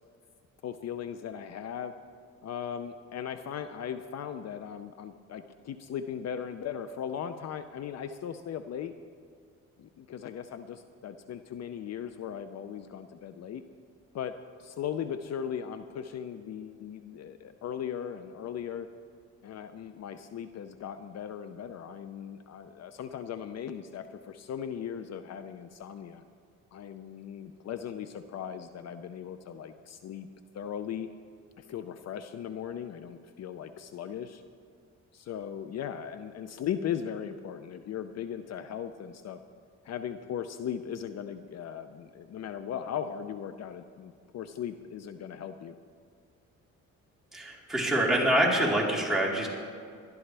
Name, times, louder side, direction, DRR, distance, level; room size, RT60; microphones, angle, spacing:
voice 1, 0.6-1.9 2.4-8.9 9.8-13.6 14.1-14.3 14.6-18.9 19.4-26.2 26.7-30.3 30.5-31.1 31.6-34.4 35.1-39.4 39.8-45.8, left 8 dB, 60° left, 10 dB, 0.6 m, -38 dB
voice 2, 47.3-49.5, right 1 dB, ahead, -5 dB, 3.8 m, -25 dB
21.0 x 12.0 x 3.4 m, 2.3 s
cardioid pair, 90°, 30 cm